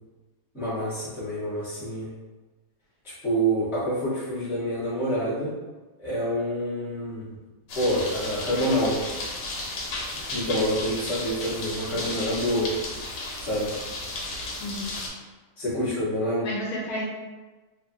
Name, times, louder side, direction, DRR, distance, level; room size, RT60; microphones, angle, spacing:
voice 1, 0.5-2.1 3.0-5.6 6.0-7.3 7.7-9.0 10.3-12.7 13.4-13.7 15.6-16.5, equal, ahead, -11 dB, 0.5 m, -27 dB
sound 1, 7.7-15.1, left 2 dB, 90° left, 1.3 m, -34 dB
voice 2, 14.6-15.0 16.4-17.1, left 1 dB, 70° left, -4 dB, 1.0 m, -31 dB
3.1 x 2.1 x 2.6 m, 1.2 s
omnidirectional pair, 1.8 m